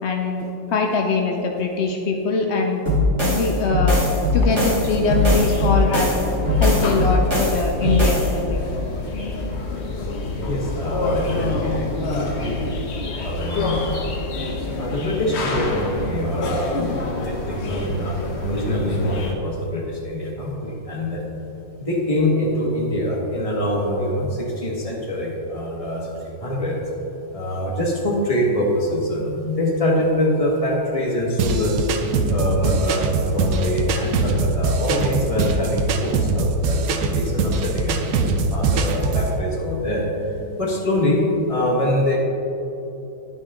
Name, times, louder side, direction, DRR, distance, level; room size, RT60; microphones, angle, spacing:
voice 1, 0.0-2.8 3.2-4.1 4.3-6.1 6.6-8.7, left 4 dB, 80° left, 2 dB, 0.6 m, -22 dB
sound 1, 2.9-8.3, left 1 dB, 35° right, 2.5 m, -20 dB
sound 2, 4.4-19.3, left 2 dB, 45° left, 1.0 m, -27 dB
voice 2, 10.3-12.6 13.2-14.0 14.8-21.2 21.8-26.8 27.3-31.7 32.3-42.2, left 1 dB, 20° left, -3 dB, 1.5 m, -24 dB
sound 3, 31.4-39.3, right 3 dB, 65° right, 1.0 m, -22 dB
10.5 x 9.3 x 3.7 m, 2.9 s
omnidirectional pair, 2.1 m